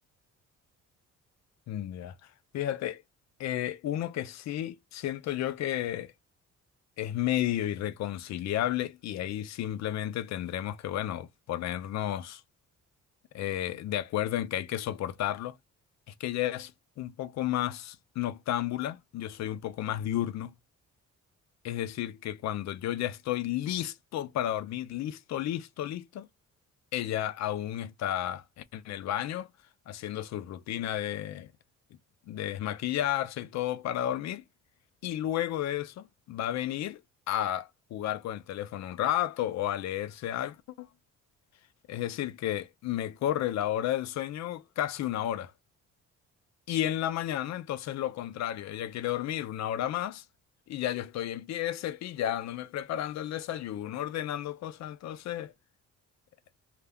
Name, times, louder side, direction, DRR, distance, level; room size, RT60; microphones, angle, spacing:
voice 1, 1.7-2.1 2.5-3.0 3.4-6.1 7.0-12.4 13.3-15.6 16.2-16.7 17.0-20.5 21.6-26.3 26.9-29.5 29.9-31.5 32.3-34.4 35.0-37.0 37.3-40.9 41.9-45.5 46.7-50.2 50.7-55.5, left 12 dB, 65° left, 0.4 m, -32 dB
2.4 x 2.1 x 3.4 m
cardioid pair, 90°, 30 cm